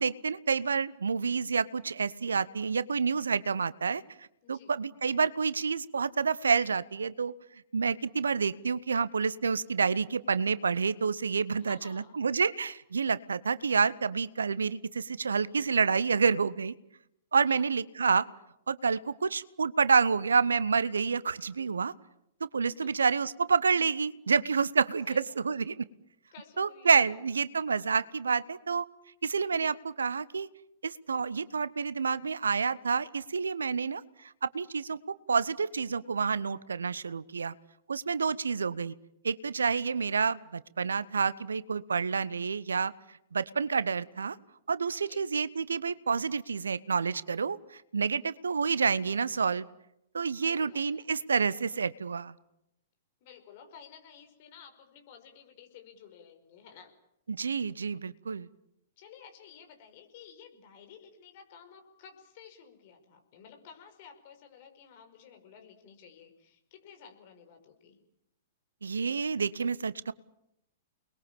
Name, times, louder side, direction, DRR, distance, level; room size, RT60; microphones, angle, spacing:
voice 1, 0.0-4.0 4.5-7.3 7.7-16.7 17.3-18.3 18.7-21.9 22.5-25.9 26.6-28.9 29.2-30.5 30.8-34.0 34.4-35.0 35.3-37.5 37.9-38.9 39.2-42.9 43.3-44.4 44.7-49.7 50.1-52.3 57.3-58.5 68.8-70.1, right 5 dB, 75° right, 18 dB, 0.9 m, -28 dB
voice 2, 4.4-4.8 11.6-12.2 17.4-17.7 22.6-23.1 25.1-25.6 26.3-27.4 45.0-45.2 50.4-51.2 53.2-57.0 59.0-68.0, left 7 dB, 45° left, 6 dB, 5.4 m, -53 dB
29.5 x 21.5 x 7.3 m, 0.80 s
figure-of-eight pair, 110°, 0 cm